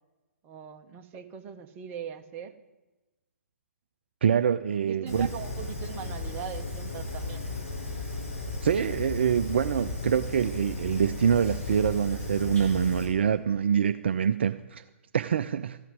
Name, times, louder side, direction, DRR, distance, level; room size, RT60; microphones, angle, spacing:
voice 1, 0.4-2.6 4.8-7.5, right 8 dB, 25° right, 7 dB, 0.9 m, -40 dB
voice 2, 4.2-5.3 8.6-14.8 15.1-15.8, right 7 dB, 55° right, 10 dB, 0.4 m, -25 dB
Fire, 5.1-13.1, left 2 dB, 70° left, 4.9 m, -35 dB
14.0 x 5.8 x 9.4 m, 1.1 s
figure-of-eight pair, 125°, 7 cm